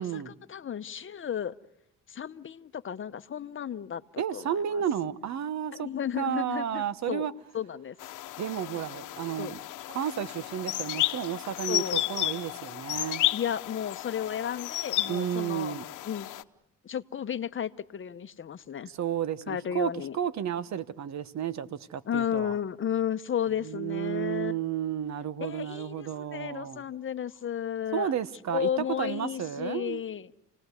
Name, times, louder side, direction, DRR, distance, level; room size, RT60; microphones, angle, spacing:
voice 1, 0.0-1.6 2.1-4.8 5.7-7.3 7.5-8.0 9.4-9.5 11.7-12.1 13.3-15.8 16.0-16.3 16.8-18.9 19.5-20.2 22.1-24.6 25.4-28.1 28.5-30.3, left 9 dB, 40° left, 0.8 m, -33 dB
voice 2, 4.2-5.9 6.2-7.3 8.4-9.6 9.9-13.3 15.1-15.8 18.9-22.6 23.6-26.8 27.9-30.0, right 9 dB, 65° right, 1.1 m, -32 dB
sound 1, 8.0-16.4, left 15 dB, 85° left, 1.0 m, -33 dB
30.0 x 18.5 x 8.2 m
cardioid pair, 90°, 30 cm